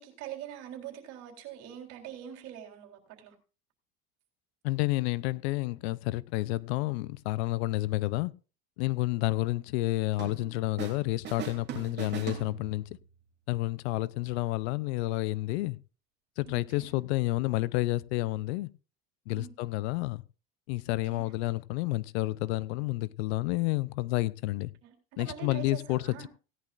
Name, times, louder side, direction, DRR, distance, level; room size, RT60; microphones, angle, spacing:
voice 1, 0.0-3.3 16.4-16.9 19.3-19.5 21.1-21.3 24.8-26.3, right 9 dB, 50° right, 3.8 m, -44 dB
voice 2, 4.6-8.3 8.8-12.8 13.5-15.8 16.4-18.7 19.3-20.2 20.7-24.7 25.2-26.3, left 19 dB, 80° left, 0.7 m, -30 dB
sound 1, 10.2-11.0 11.2-13.0, right 9 dB, 35° right, 2.6 m, -40 dB
17.5 x 11.0 x 2.5 m
cardioid pair, 150°, 32 cm